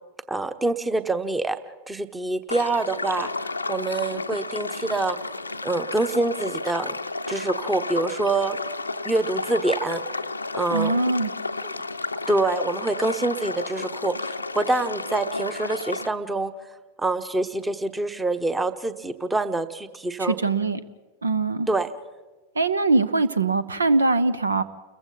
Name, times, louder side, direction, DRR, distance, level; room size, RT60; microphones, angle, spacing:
voice 1, 0.3-1.6 1.9-5.2 5.6-7.0 7.3-8.6 9.0-10.0 10.5-10.9 11.6-11.7 12.3-16.5 17.0-20.4 21.7-21.9, right 2 dB, 10° right, 12 dB, 1.1 m, -26 dB
sound 1, 2.5-16.1, left 3 dB, 80° left, 0.7 m, -32 dB
voice 2, 10.7-11.3 20.2-20.8 21.2-21.7 22.6-24.6, right 3 dB, 75° right, 16 dB, 0.8 m, -22 dB
30.0 x 22.0 x 4.1 m, 1.3 s
figure-of-eight pair, 90°, 0 cm